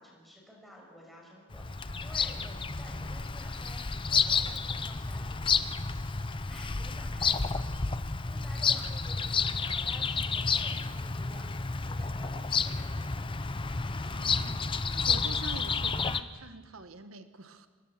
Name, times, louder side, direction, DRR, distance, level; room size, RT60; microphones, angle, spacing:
voice 1, 0.0-5.6 6.5-13.3, equal, ahead, -2 dB, 6.5 m, -52 dB
Bird vocalization bird call bird song, 1.5-16.2, left 5 dB, 25° left, 0.6 m, -31 dB
voice 2, 14.1-17.7, right 3 dB, 90° right, 10 dB, 1.3 m, -46 dB
26.0 x 21.0 x 7.4 m, 1.4 s
head